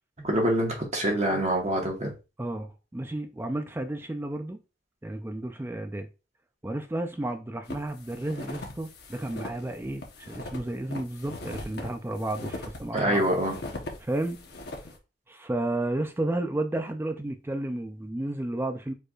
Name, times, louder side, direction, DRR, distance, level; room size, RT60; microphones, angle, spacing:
voice 1, 0.2-2.1 12.9-13.5, right 1 dB, 35° right, 1.6 m, -25 dB
voice 2, 2.4-4.6 5.0-6.1 6.6-13.3 14.0-14.4 15.3-18.9, right 1 dB, 10° right, 0.4 m, -32 dB
sound 1, 7.6-15.0, left 2 dB, 60° left, 1.0 m, -40 dB
4.6 x 4.6 x 2.4 m
head